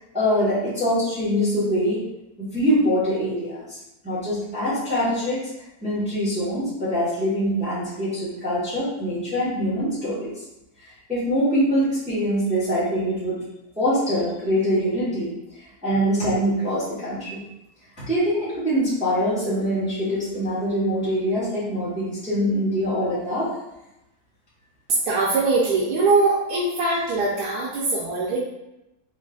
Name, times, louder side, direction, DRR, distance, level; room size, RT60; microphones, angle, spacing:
voice 1, 0.1-2.0 2.4-3.8 4.0-5.4 5.8-10.3 11.1-13.4 13.8-17.4 18.0-23.5, equal, 5° right, -9 dB, 0.7 m, -24 dB
voice 2, 25.1-28.4, right 3 dB, 90° right, -6 dB, 1.2 m, -22 dB
3.8 x 2.4 x 2.3 m, 0.90 s
omnidirectional pair, 1.7 m